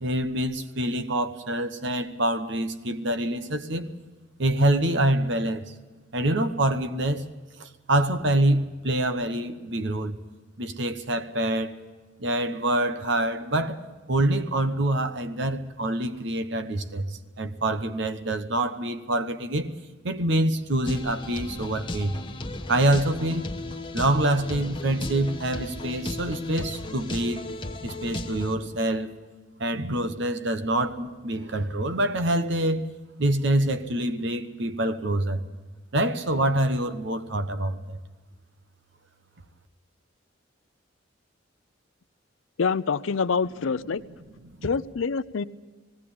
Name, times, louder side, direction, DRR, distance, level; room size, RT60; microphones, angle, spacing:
voice 1, 0.0-3.9 4.4-5.7 6.1-7.2 7.6-10.2 10.6-11.8 12.2-19.7 20.0-22.2 22.7-23.5 23.9-27.4 27.8-29.1 29.6-32.9 33.2-35.4 35.9-38.0 44.4-44.7, right 1 dB, 60° right, 1.1 m, -26 dB
sound 1, 20.8-28.5, left 2 dB, 25° left, 1.2 m, -35 dB
voice 2, 42.6-44.0 44.6-45.4, left 5 dB, 80° left, 0.6 m, -26 dB
18.5 x 16.5 x 8.7 m
head